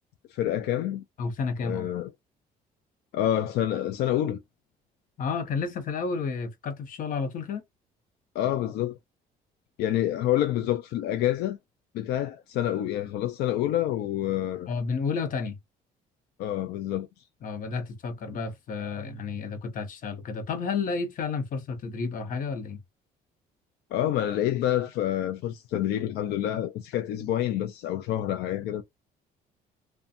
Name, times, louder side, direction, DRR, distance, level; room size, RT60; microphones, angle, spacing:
voice 1, 0.3-1.0 1.6-2.1 3.1-4.4 8.3-9.0 9.8-11.6 11.9-14.7 16.4-17.1 23.9-28.8, left 12 dB, 75° left, 0.4 m, -27 dB
voice 2, 1.2-1.9 5.2-7.6 14.7-15.6 17.4-22.8, left 5 dB, 55° left, 0.8 m, -31 dB
2.6 x 2.3 x 2.4 m
cardioid pair, 110°, 17 cm